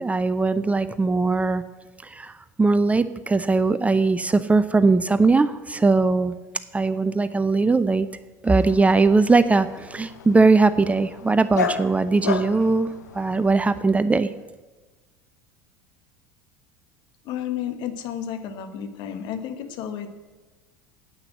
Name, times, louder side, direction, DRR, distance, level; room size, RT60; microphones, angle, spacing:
voice 1, 0.0-1.6 2.0-2.3 2.6-6.3 6.7-8.1 8.4-14.3, right 3 dB, 15° right, 13 dB, 0.6 m, -20 dB
Dog, 8.4-13.8, left 5 dB, 80° left, 0.9 m, -33 dB
voice 2, 17.2-20.1, left 9 dB, 55° left, 8 dB, 1.4 m, -32 dB
9.8 x 8.7 x 7.6 m, 1.3 s
figure-of-eight pair, 70°, 9 cm